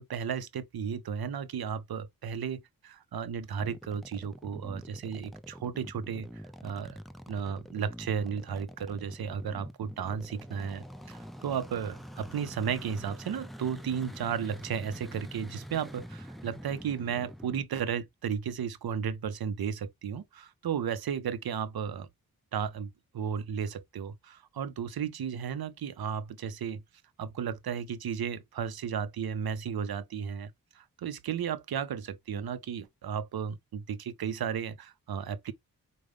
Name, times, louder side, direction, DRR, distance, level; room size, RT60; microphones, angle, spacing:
voice 1, 0.0-6.3 6.6-7.0 7.3-22.1 22.5-26.8 27.2-35.5, right 7 dB, 90° right, 0.6 m, -34 dB
sound 1, 3.6-17.6, equal, ahead, 0.5 m, -46 dB
5.0 x 2.1 x 3.3 m
wide cardioid pair, 85°, 36 cm